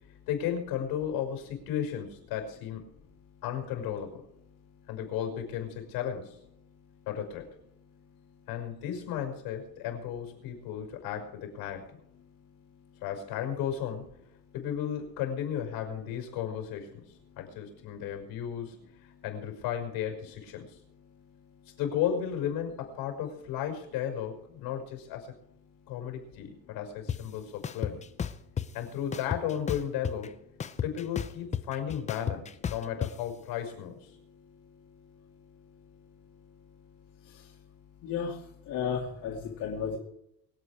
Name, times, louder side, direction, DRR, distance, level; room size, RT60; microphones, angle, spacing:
voice 1, 0.3-2.8 3.4-4.2 4.9-6.4 7.1-7.5 8.5-11.9 13.0-14.1 14.5-17.0 17.4-18.8 19.2-20.8 21.8-25.3 25.9-28.0 28.7-30.4 30.8-34.1, left 9 dB, 80° left, 4 dB, 5.8 m, -34 dB
sound 1, 27.1-27.2 27.6-28.7 29.1-30.3 30.6-33.1, left 8 dB, 20° left, 0.6 m, -32 dB
voice 2, 38.7-40.0, left 7 dB, 55° left, -4 dB, 2.9 m, -32 dB
24.5 x 8.5 x 5.0 m, 0.77 s
cardioid pair, 165°, 37 cm